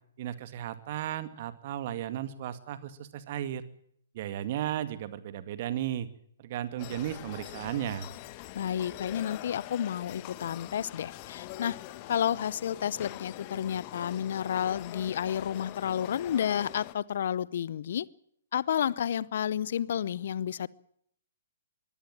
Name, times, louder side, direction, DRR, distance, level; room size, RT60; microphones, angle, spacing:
voice 1, 0.2-3.6 4.1-6.1 6.4-8.1, right 11 dB, 45° right, 12 dB, 2.1 m, -35 dB
sound 1, 6.8-16.9, left 16 dB, 35° left, 1.4 m, -44 dB
voice 2, 8.5-11.8 12.1-18.1 18.5-20.7, left 9 dB, 55° left, 23 dB, 0.7 m, -31 dB
23.0 x 16.5 x 7.5 m, 0.69 s
figure-of-eight pair, 125°, 0 cm